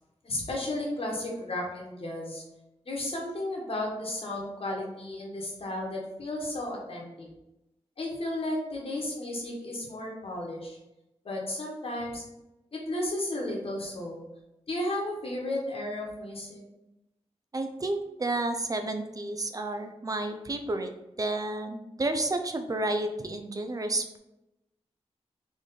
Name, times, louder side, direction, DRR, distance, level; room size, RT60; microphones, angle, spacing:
voice 1, 0.2-2.4 2.9-7.3 8.0-10.8 11.2-12.2 12.7-14.2 14.7-16.6, left 1 dB, 55° left, -2 dB, 1.3 m, -33 dB
voice 2, 17.5-20.9 21.2-24.2, right 2 dB, 30° right, 7 dB, 0.5 m, -31 dB
4.1 x 3.2 x 3.7 m, 0.92 s
wide cardioid pair, 75°, 11 cm